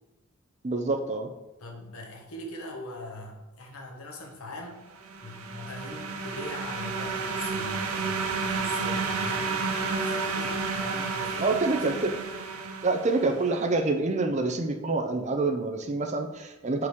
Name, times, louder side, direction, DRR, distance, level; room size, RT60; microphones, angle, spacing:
voice 1, 0.6-1.3 11.4-12.2 12.8-16.9, right 3 dB, 30° right, 5 dB, 0.5 m, -27 dB
voice 2, 1.6-4.9 5.2-11.5, left 1 dB, 85° left, 0 dB, 1.2 m, -41 dB
sound 1, 5.0-13.6, right 4 dB, 80° right, 0.7 m, -31 dB
6.2 x 4.7 x 3.6 m, 1.1 s
head